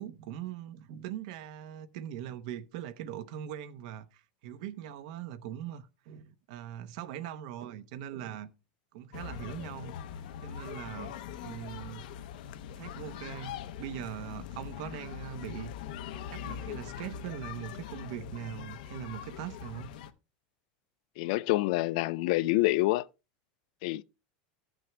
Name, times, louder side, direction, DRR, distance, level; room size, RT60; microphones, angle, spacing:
voice 1, 0.0-8.5 8.9-9.9 10.4-11.1 11.4-12.0 12.8-15.7 16.3-20.0, right 10 dB, 55° right, 0.8 m, -41 dB
sound 1, 9.1-20.1, left 9 dB, 70° left, 0.8 m, -42 dB
voice 2, 21.2-23.1 23.8-24.0, left 18 dB, 50° left, 0.4 m, -27 dB
14.5 x 6.1 x 3.3 m
supercardioid pair, 180°, 5 cm